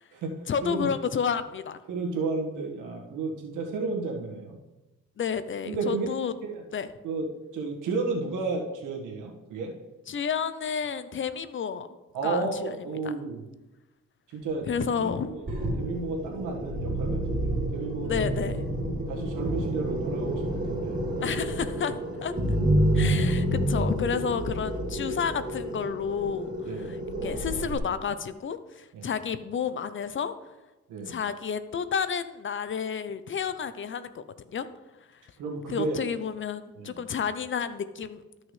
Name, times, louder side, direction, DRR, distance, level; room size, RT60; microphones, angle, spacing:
voice 1, 0.5-1.8 5.2-6.3 6.7-6.9 10.1-11.9 12.2-12.7 14.7-15.3 18.0-18.6 21.2-21.9 22.2-22.3 22.9-26.5 26.8-27.0 27.2-30.3 31.1-34.2 34.5-34.7 35.7-38.2, left 7 dB, 40° left, 12 dB, 0.6 m, -30 dB
voice 2, 1.9-4.6 5.6-6.1 6.4-6.6 7.0-7.2 7.5-9.7 12.1-13.4 14.3-14.7 14.9-15.4 15.8-18.4 19.1-21.0 21.9-22.0 26.6-27.0 28.9-29.1 30.9-31.2 35.4-36.0 36.8-37.0, right 4 dB, 85° right, 1 dB, 1.7 m, -32 dB
sound 1, 15.5-27.8, right 1 dB, 25° right, 3.0 m, -29 dB
13.0 x 6.2 x 3.3 m, 1.1 s
cardioid pair, 90°, 30 cm